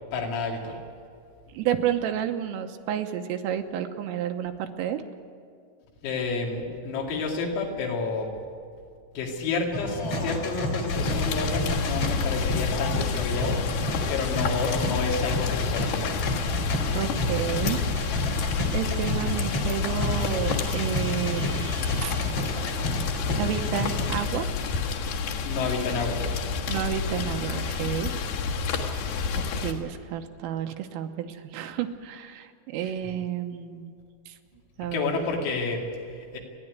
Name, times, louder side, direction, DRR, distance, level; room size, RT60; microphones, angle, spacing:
voice 1, 0.1-0.8 6.0-8.4 9.1-13.6 14.1-16.2 25.4-26.2 32.8-32.9 34.8-36.4, left 4 dB, 85° left, 0 dB, 5.1 m, -30 dB
voice 2, 1.6-5.0 16.9-17.8 18.7-21.8 22.0-22.1 23.4-24.5 26.7-28.1 29.6-33.9 34.3-34.4 34.8-35.2, right 10 dB, 85° right, 6 dB, 3.5 m, -30 dB
sound 1, 9.7-24.2, left 1 dB, 45° left, 2.2 m, -31 dB
Rain, 10.9-29.7, left 5 dB, 60° left, 3.1 m, -29 dB
sound 2, 15.3-23.2, right 3 dB, 65° right, 1.8 m, -49 dB
29.0 x 11.0 x 9.5 m, 2.2 s
omnidirectional pair, 6.0 m